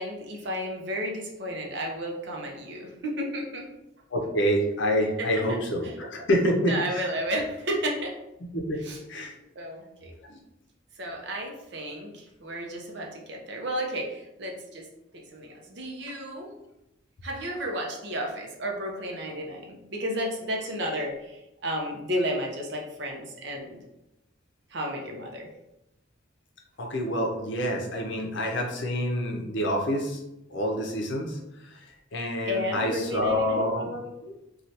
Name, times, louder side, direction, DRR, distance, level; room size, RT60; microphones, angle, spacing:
voice 1, 0.0-3.7 5.2-5.4 5.8-5.9 6.7-8.1 8.8-9.0 9.6-10.1 11.0-14.9 15.1-16.5 17.2-23.8 24.7-25.5 32.5-33.7, equal, 60° right, 0 dB, 0.6 m, -32 dB
voice 2, 4.1-7.1 8.5-8.8 9.1-9.3 26.8-30.2 30.5-31.4 32.1-34.3, equal, 65° left, 1 dB, 0.6 m, -27 dB
3.2 x 2.3 x 2.7 m, 0.89 s
head